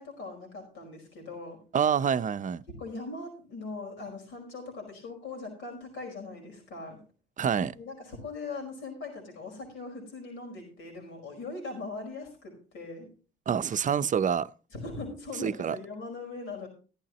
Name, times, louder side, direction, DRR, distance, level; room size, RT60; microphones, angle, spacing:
voice 1, 0.0-1.6 2.7-7.0 7.7-13.1 14.7-16.7, left 3 dB, 85° left, 5.0 m, -40 dB
voice 2, 1.7-2.6 7.4-7.8 13.5-14.5 15.4-15.8, right 7 dB, 40° right, 0.6 m, -27 dB
14.5 x 11.5 x 3.0 m
cardioid pair, 90°, 20 cm